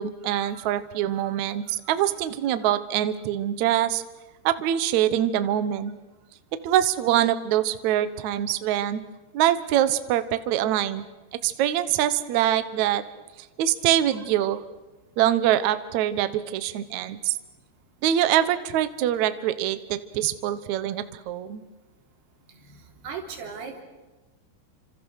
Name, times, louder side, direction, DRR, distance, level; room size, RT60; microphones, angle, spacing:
voice 1, 0.0-4.0 4.4-5.9 6.6-9.0 9.3-11.0 11.3-13.0 13.6-14.6 15.2-17.4 18.0-21.6, right 11 dB, 90° right, 12 dB, 1.6 m, -24 dB
voice 2, 23.0-23.8, right 6 dB, 65° right, 2 dB, 5.3 m, -36 dB
29.5 x 26.0 x 6.5 m, 1.2 s
omnidirectional pair, 5.0 m